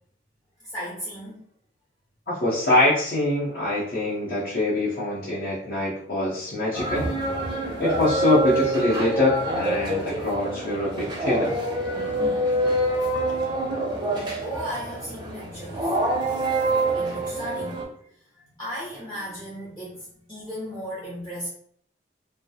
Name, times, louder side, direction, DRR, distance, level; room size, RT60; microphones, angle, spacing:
voice 1, 0.6-1.4 7.7-7.8 12.0-12.1 13.3-13.4 13.7-13.9 14.4-16.0 16.9-21.5, equal, 25° left, -8 dB, 0.5 m, -36 dB
voice 2, 2.3-7.1 7.8-11.6, left 1 dB, 55° left, -9 dB, 0.7 m, -24 dB
sound 1, 6.7-17.8, right 1 dB, 25° right, 0.4 m, -26 dB
2.3 x 2.0 x 2.7 m, 0.65 s
head